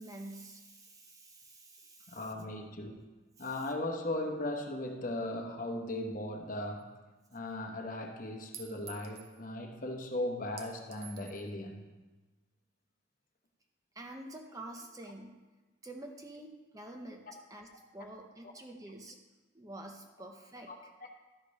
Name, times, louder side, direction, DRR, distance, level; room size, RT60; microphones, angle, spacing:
voice 1, 0.0-2.3 3.4-3.5 13.9-15.4 15.8-17.2 17.5-19.2 19.5-20.7, right 1 dB, 15° right, 2 dB, 0.7 m, -48 dB
voice 2, 2.1-3.0 3.4-6.9 7.3-11.8 18.4-18.5 20.7-20.8, left 1 dB, 45° left, 3 dB, 1.0 m, -37 dB
Chink clink, 6.8-6.9 8.5-9.4 10.6-11.5, right 7 dB, 50° right, 0.8 m, -50 dB
12.0 x 5.1 x 5.3 m, 1.2 s
head